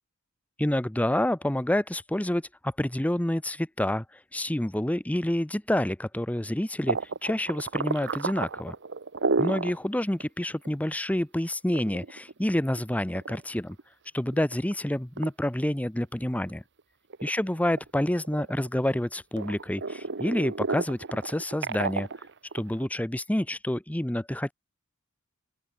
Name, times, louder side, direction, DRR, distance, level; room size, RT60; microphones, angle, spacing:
voice 1, 0.6-8.7 9.4-13.8 14.1-16.6 17.2-22.3 22.5-24.5, left 1 dB, 5° left, 0.7 m, -28 dB
sound 1, 6.9-9.8 10.2-10.3 10.6-10.7 11.5-13.8 14.3-14.7 15.2-15.3 15.8-16.8 17.1-19.0 19.4-22.9, right 4 dB, 55° right, 1.1 m, -32 dB
open air
head